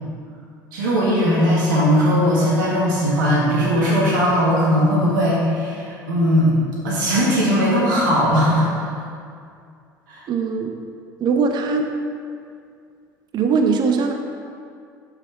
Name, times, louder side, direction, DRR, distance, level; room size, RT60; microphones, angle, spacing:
voice 1, 0.7-6.5 6.8-8.7 10.1-10.2, equal, 75° right, -6 dB, 1.7 m, -18 dB
voice 2, 10.3-10.7 11.2-11.9 13.3-14.1, right 5 dB, 45° right, 4 dB, 0.7 m, -20 dB
6.4 x 6.2 x 5.1 m, 2.3 s
hypercardioid pair, 65°, 10 cm